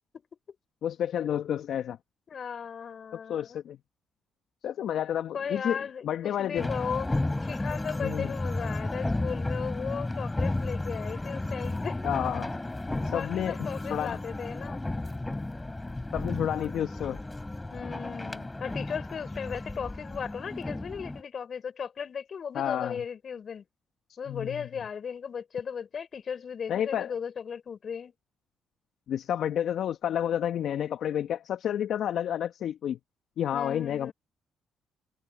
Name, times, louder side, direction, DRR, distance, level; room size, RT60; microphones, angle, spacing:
voice 1, 0.8-2.0 3.3-3.8 4.6-5.8 6.0-6.7 8.0-8.3 12.0-12.5 13.1-13.6 13.9-14.2 16.1-17.2 22.5-23.0 24.3-24.7 26.7-27.1 29.1-33.0 33.4-34.1, left 10 dB, 70° left, 1.7 m, -30 dB
voice 2, 2.3-3.6 5.3-7.1 7.4-12.0 13.1-14.8 17.7-23.6 24.2-28.1 33.5-34.1, left 7 dB, 55° left, 6.3 m, -36 dB
sound 1, 6.6-21.2, left 2 dB, 15° left, 3.7 m, -33 dB
supercardioid pair, 55°, 0 cm